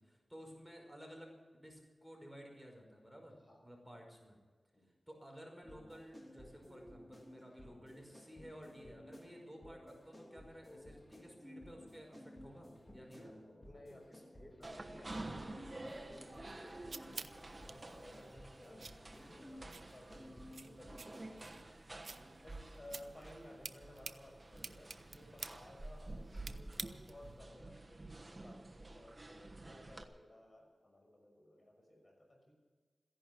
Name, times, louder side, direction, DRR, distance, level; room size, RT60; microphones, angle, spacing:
voice 1, 0.0-4.4 4.8-13.4, equal, ahead, 1 dB, 5.4 m, -54 dB
sound 1, 5.6-21.6, left 1 dB, 20° left, 3.1 m, -56 dB
voice 2, 13.1-21.5 22.1-32.6, left 1 dB, 40° left, 1 dB, 6.2 m, -58 dB
sound 2, 14.6-30.0, right 2 dB, 30° right, 1.3 m, -50 dB
sound 3, 16.3-27.4, right 4 dB, 75° right, 0.6 m, -52 dB
15.5 x 11.0 x 8.5 m, 1.4 s
cardioid pair, 55°, 0 cm